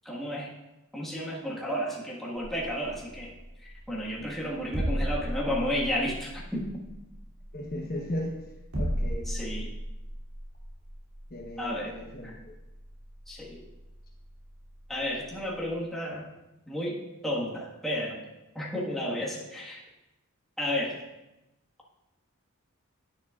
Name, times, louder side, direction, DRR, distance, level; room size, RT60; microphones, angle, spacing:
voice 1, 0.0-0.5 0.9-3.3 3.6-6.7 9.3-9.7 11.6-11.9 12.2-12.3 13.3-13.6 14.9-16.3 16.7-18.2 18.5-19.8 20.6-21.0, equal, ahead, -5 dB, 1.5 m, -32 dB
sound 1, 2.4-15.7, equal, 90° right, 2.7 m, -37 dB
voice 2, 7.5-8.4 8.7-9.3 11.3-12.4, left 1 dB, 45° left, 1 dB, 1.0 m, -36 dB
10.0 x 9.7 x 2.4 m, 0.98 s
head